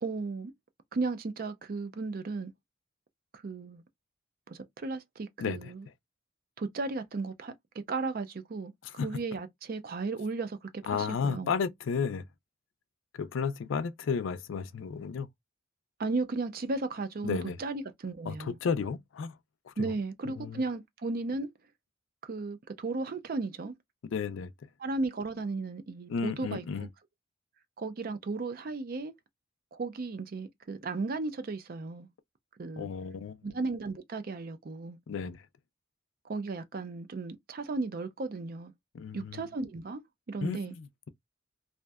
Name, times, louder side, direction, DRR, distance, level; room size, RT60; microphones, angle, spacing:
voice 1, 0.0-0.5 0.9-2.5 3.4-3.8 4.5-5.8 6.6-7.5 7.9-8.7 9.0-11.5 16.0-18.6 19.8-21.5 22.2-23.7 24.8-26.9 27.8-29.1 29.7-32.1 32.6-32.9 33.4-35.0 36.3-38.7 39.1-40.0 40.3-40.7, right 3 dB, 50° right, 0.4 m, -35 dB
voice 2, 5.4-5.7 8.8-9.2 10.9-12.2 13.1-15.3 17.2-17.6 18.3-19.4 19.7-20.0 20.3-20.6 24.0-24.5 26.1-26.9 32.8-33.4 35.1-35.4 38.9-39.5 40.4-41.1, left 5 dB, 75° left, 0.4 m, -33 dB
2.6 x 2.1 x 2.2 m
head